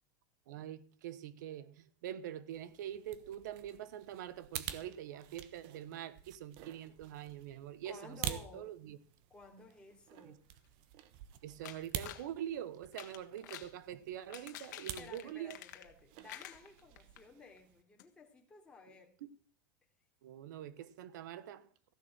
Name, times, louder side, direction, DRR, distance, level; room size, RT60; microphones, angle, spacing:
voice 1, 0.5-9.0 10.2-10.3 11.4-15.6 19.2-19.3 20.2-21.9, right 11 dB, 85° right, 1.2 m, -45 dB
sound 1, 2.5-17.8, right 11 dB, 55° right, 1.2 m, -48 dB
voice 2, 7.8-8.8 9.3-10.4 15.0-19.1, left 4 dB, 10° left, 3.2 m, -55 dB
sound 2, 11.6-12.3 12.8-13.7 14.2-16.0 16.3-17.2 17.6-17.7 18.0-18.1, left 14 dB, 75° left, 1.6 m, -49 dB
15.0 x 6.6 x 8.8 m
supercardioid pair, 140°, 10 cm